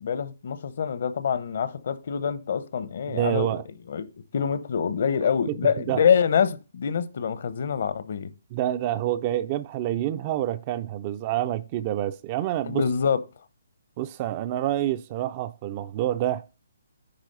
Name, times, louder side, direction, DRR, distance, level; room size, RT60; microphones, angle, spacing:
voice 1, 0.0-3.6 3.9-4.1 4.3-8.3 12.6-13.2, left 7 dB, 50° left, 0.7 m, -25 dB
voice 2, 3.1-3.6 5.5-5.6 5.9-6.0 8.5-12.8 14.0-16.4, right 13 dB, 25° right, 0.4 m, -27 dB
9.8 x 3.5 x 6.6 m
hypercardioid pair, 170°, 0 cm